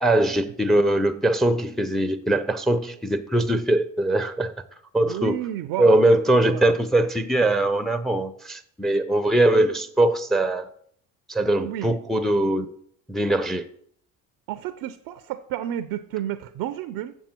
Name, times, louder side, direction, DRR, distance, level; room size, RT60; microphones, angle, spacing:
voice 1, 0.0-4.5 4.9-5.4 5.8-10.7 11.3-12.7 13.1-13.6, right 1 dB, ahead, 0.6 m, -21 dB
voice 2, 5.0-6.0 6.4-6.6 11.6-12.0 14.5-17.2, right 12 dB, 65° right, 0.6 m, -31 dB
7.2 x 7.1 x 4.4 m
hypercardioid pair, 60°, 42 cm